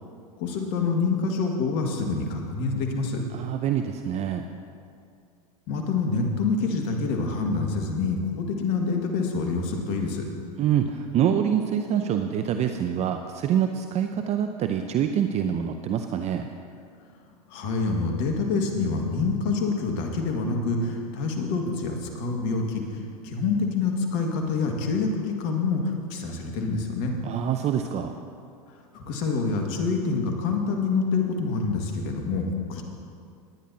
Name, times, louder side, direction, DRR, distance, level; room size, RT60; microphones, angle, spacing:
voice 1, 0.4-3.3 5.7-10.3 17.5-27.1 28.9-32.8, left 4 dB, 55° left, 2 dB, 2.0 m, -26 dB
voice 2, 3.3-4.5 10.6-16.5 27.2-28.1, right 9 dB, 35° right, 7 dB, 0.6 m, -25 dB
19.5 x 10.0 x 2.9 m, 2.3 s
hypercardioid pair, 95°, 20 cm